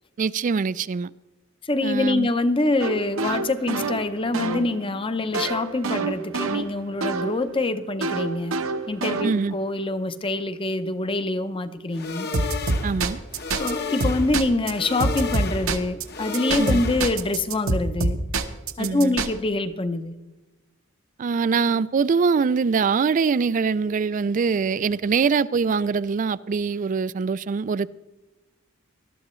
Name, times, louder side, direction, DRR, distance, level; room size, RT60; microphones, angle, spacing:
voice 1, 0.2-1.1 1.8-2.3 9.2-9.5 12.8-13.2 16.6-16.8 18.8-19.2 21.2-27.9, right 5 dB, 40° right, 0.3 m, -23 dB
voice 2, 1.6-8.6 8.9-12.3 13.6-18.2 18.8-20.2, left 2 dB, 25° left, 0.7 m, -25 dB
sound 1, 2.8-7.4 8.0-9.6 12.3-13.7 14.0-14.7 15.0-16.0 16.3-19.3, right 3 dB, 70° right, 1.0 m, -26 dB
sound 2, 11.9-17.3, left 4 dB, 50° left, 1.0 m, -33 dB
20.0 x 12.5 x 3.1 m
head